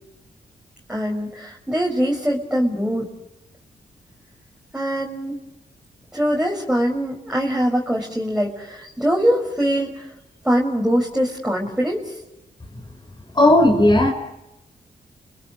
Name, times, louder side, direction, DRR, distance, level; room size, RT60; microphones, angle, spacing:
voice 1, 0.9-3.1 4.7-5.4 6.1-10.1 10.4-12.1, equal, 5° right, -2 dB, 5.8 m, -22 dB
voice 2, 13.3-14.1, left 1 dB, 25° left, 2 dB, 5.2 m, -14 dB
29.5 x 21.0 x 8.8 m, 0.89 s
supercardioid pair, 40°, 17 cm